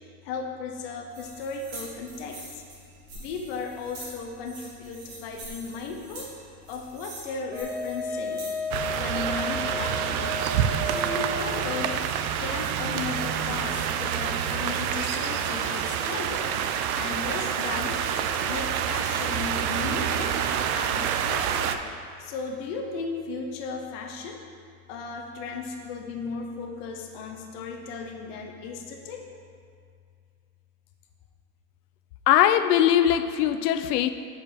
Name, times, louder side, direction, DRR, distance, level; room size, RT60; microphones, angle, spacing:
voice 1, 0.2-2.4 3.1-6.3 6.7-8.5 8.9-10.3 10.8-12.1 12.4-16.5 17.0-18.0 18.4-20.4 20.7-21.8 22.2-24.4 24.9-29.2, left 4 dB, 40° left, 2 dB, 0.6 m, -35 dB
sound 1, 1.1-9.0, right 2 dB, 35° right, 1.6 m, -45 dB
Wind instrument woodwind instrument, 7.5-11.9, left 1 dB, 20° right, 0.8 m, -33 dB
sound 2, 8.7-21.8, right 8 dB, 65° right, 0.5 m, -27 dB
voice 2, 32.3-34.1, left 11 dB, 85° left, 11 dB, 0.5 m, -20 dB
5.1 x 4.8 x 4.9 m, 2.2 s
supercardioid pair, 155°, 46 cm